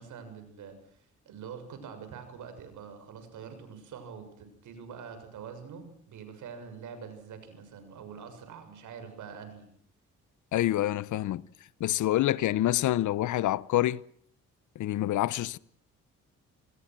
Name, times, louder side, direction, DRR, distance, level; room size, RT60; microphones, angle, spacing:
voice 1, 0.0-9.7, right 6 dB, 80° right, 6.9 m, -45 dB
voice 2, 10.5-11.4 11.8-14.0 14.8-15.6, left 14 dB, 75° left, 0.9 m, -27 dB
28.0 x 21.0 x 6.2 m
cardioid pair, 90°, 30 cm